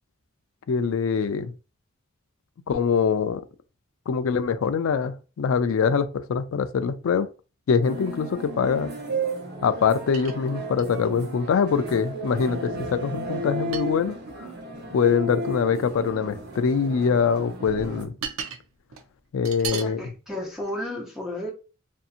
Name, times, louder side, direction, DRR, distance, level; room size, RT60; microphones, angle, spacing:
voice 1, 0.7-1.5 2.7-3.4 4.1-7.3 7.7-8.9 9.6-14.2 14.9-18.1 19.3-20.0, left 6 dB, 70° left, 0.3 m, -23 dB
sound 1, 7.8-18.0, right 1 dB, 50° right, 0.8 m, -34 dB
sound 2, 9.8-9.9 10.1-11.3 11.8-11.9 12.4-12.9 13.7-14.4 15.2-15.4 16.5-17.1 17.4-18.6 18.9-19.1 19.4-19.9 20.6-20.7, right 7 dB, 85° right, 0.5 m, -37 dB
voice 2, 19.7-21.5, left 1 dB, ahead, 0.6 m, -33 dB
2.6 x 2.6 x 2.4 m
head